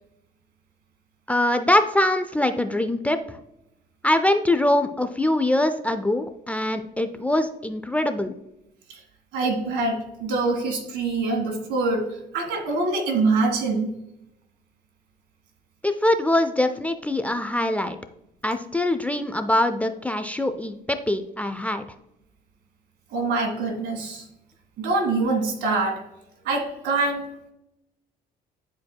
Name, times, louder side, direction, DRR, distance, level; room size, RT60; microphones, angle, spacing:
voice 1, 1.3-3.4 4.0-8.3 15.8-18.0 18.4-21.9, left 1 dB, 10° left, 8 dB, 0.4 m, -23 dB
voice 2, 9.3-12.1 12.3-13.9 23.1-24.2 24.8-26.0 26.5-27.2, right 3 dB, 80° right, 3 dB, 1.8 m, -24 dB
10.5 x 4.6 x 2.2 m, 0.88 s
cardioid pair, 110°, 17 cm